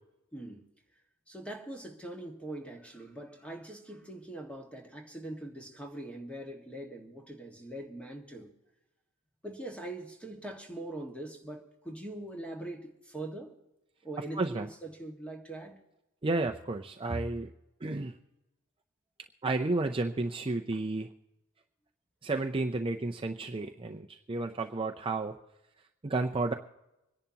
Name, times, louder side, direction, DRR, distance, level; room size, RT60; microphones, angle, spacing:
voice 1, 0.3-0.7 1.3-8.5 9.4-13.5 14.0-15.8, right 1 dB, 5° left, 1.7 m, -42 dB
voice 2, 14.3-14.7 16.2-17.5 17.8-18.2 19.4-21.1 22.2-25.3 26.0-26.5, right 2 dB, 25° right, 0.5 m, -32 dB
26.0 x 10.5 x 2.9 m
head